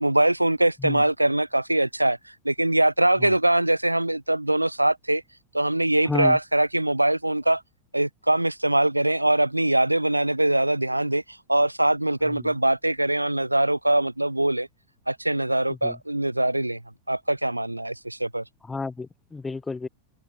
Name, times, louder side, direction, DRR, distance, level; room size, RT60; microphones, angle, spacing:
voice 1, 0.0-2.2 2.4-5.2 5.5-7.6 7.9-11.2 11.5-14.7 15.1-16.8 17.1-18.4, right 1 dB, 85° right, 0.9 m, -22 dB
voice 2, 6.1-6.4 12.3-12.5 15.8-16.0 18.6-19.9, left 4 dB, 10° left, 0.6 m, -31 dB
figure-of-eight pair, 90°, 0 cm